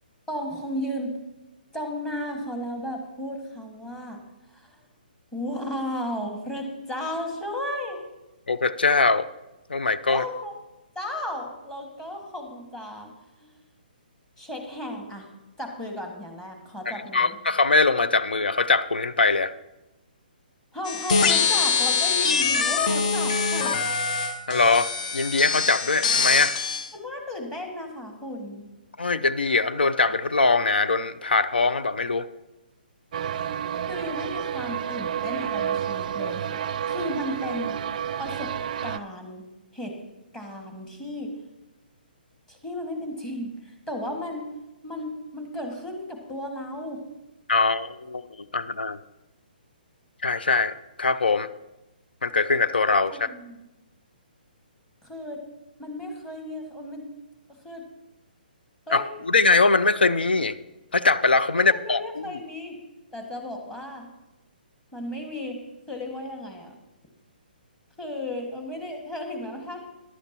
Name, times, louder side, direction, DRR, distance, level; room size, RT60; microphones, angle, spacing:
voice 1, 0.3-1.2 1.7-4.2 4.6-4.8 5.3-8.0 10.1-10.5 11.0-13.1 13.4-13.6 14.4-15.3 15.6-17.4 20.7-23.8 26.9-28.6 33.9-36.6 36.9-37.8 38.2-38.5 38.8-39.4 39.7-39.9 40.3-41.3 42.5-44.4 44.8-47.0 53.1-53.6 55.0-55.4 55.8-57.0 57.6-57.8 58.9-59.1 61.6-62.7 63.1-64.1 64.9-65.6 65.9-66.8 68.0-69.9, left 1 dB, 10° left, 2 dB, 1.8 m, -34 dB
voice 2, 8.5-9.3 9.7-10.2 16.9-19.5 24.5-26.6 29.0-32.3 47.5-48.2 48.5-49.0 50.2-51.5 52.2-53.3 58.9-60.6 60.9-62.4, left 3 dB, 85° left, 14 dB, 0.6 m, -22 dB
sound 1, 20.9-26.9, left 5 dB, 50° left, 0.9 m, -24 dB
sound 2, 33.1-39.0, right 9 dB, 50° right, 0.4 m, -30 dB
14.5 x 11.0 x 2.9 m, 0.99 s
hypercardioid pair, 135°, 5 cm